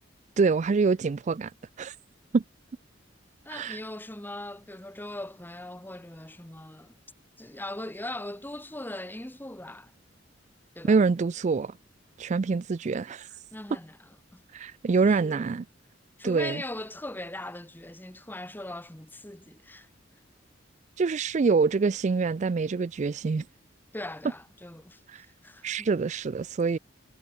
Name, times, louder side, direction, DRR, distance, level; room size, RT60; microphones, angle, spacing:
voice 1, 0.4-1.5 1.8-1.9 2.3-2.4 3.5-3.8 10.8-11.7 12.2-13.3 14.5-15.6 16.2-16.6 21.0-23.4 25.1-25.3 25.6-26.8, right 4 dB, 40° right, 0.4 m, -25 dB
voice 2, 3.4-7.0 7.4-9.9 10.7-11.0 13.5-14.4 15.0-15.5 16.2-19.9 23.9-25.9, left 1 dB, 10° left, 1.2 m, -40 dB
head